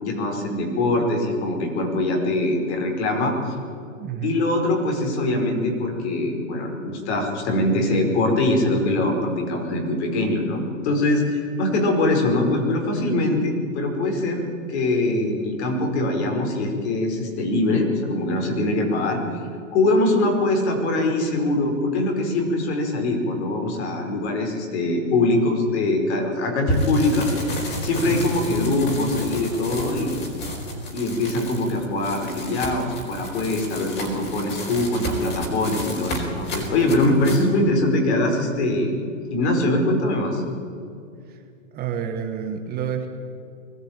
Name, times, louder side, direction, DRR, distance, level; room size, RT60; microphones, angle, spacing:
voice 1, 0.0-3.5 4.2-14.4 14.7-19.2 19.7-27.3 27.8-30.2 30.9-38.9 39.3-40.4, left 2 dB, 55° left, 2 dB, 5.2 m, -22 dB
voice 2, 4.0-4.3 28.0-28.3 36.9-37.1 41.3-41.4 41.7-43.1, right 8 dB, 25° right, 5 dB, 1.5 m, -29 dB
sound 1, 26.7-37.5, equal, 25° left, 4.6 m, -31 dB
21.0 x 14.5 x 9.0 m, 2.5 s
hypercardioid pair, 140°, 40 cm